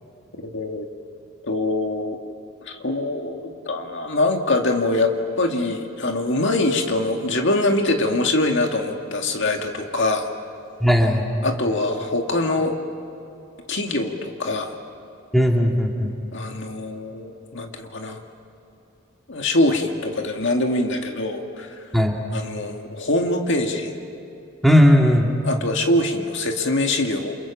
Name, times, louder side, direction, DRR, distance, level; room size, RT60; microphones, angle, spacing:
voice 1, 0.4-0.9 1.4-2.2 2.7-10.3 11.4-12.8 13.7-14.7 16.3-18.2 19.3-21.8 22.3-23.9 25.4-27.4, left 2 dB, 60° left, 3 dB, 2.1 m, -23 dB
voice 2, 10.8-11.3 15.3-16.1 21.9-22.1 24.6-25.3, equal, ahead, 0 dB, 2.5 m, -16 dB
29.0 x 28.0 x 7.3 m, 2.7 s
head